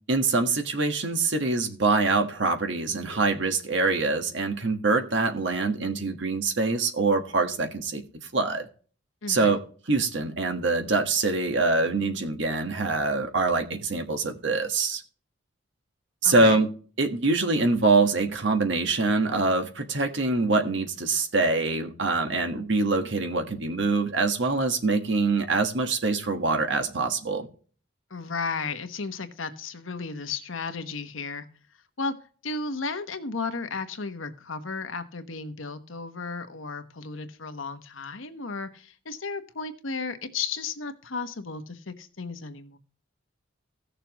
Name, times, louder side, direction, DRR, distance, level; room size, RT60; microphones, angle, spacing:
voice 1, 0.1-8.0 8.3-8.7 9.3-9.6 9.9-15.0 16.2-16.7 17.0-27.5, right 3 dB, 70° right, 6 dB, 1.4 m, -24 dB
voice 2, 9.2-9.5 16.2-16.6 28.1-31.4 32.0-32.1 32.4-42.8, left 4 dB, 85° left, 9 dB, 1.1 m, -34 dB
16.5 x 6.7 x 3.0 m, 0.41 s
head